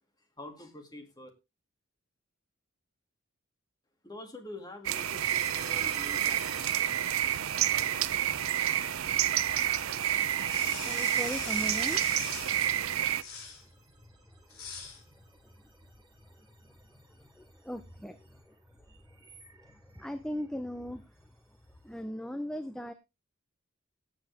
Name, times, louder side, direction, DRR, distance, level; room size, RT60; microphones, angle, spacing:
voice 1, 0.4-1.3 4.0-6.6, left 1 dB, 20° left, 5 dB, 2.3 m, -46 dB
sound 1, 4.8-13.2, right 11 dB, 80° right, 0.6 m, -29 dB
sound 2, 5.0-22.0, right 4 dB, 20° right, 3.7 m, -50 dB
sound 3, 10.4-12.6 13.1-13.6 14.5-15.0, left 5 dB, 85° left, 4.3 m, -41 dB
voice 2, 10.9-12.0 15.4-15.5 17.2-18.5 19.6-21.0 21.8-22.9, equal, 5° left, 9 dB, 0.6 m, -38 dB
17.0 x 7.9 x 3.5 m, 0.26 s
head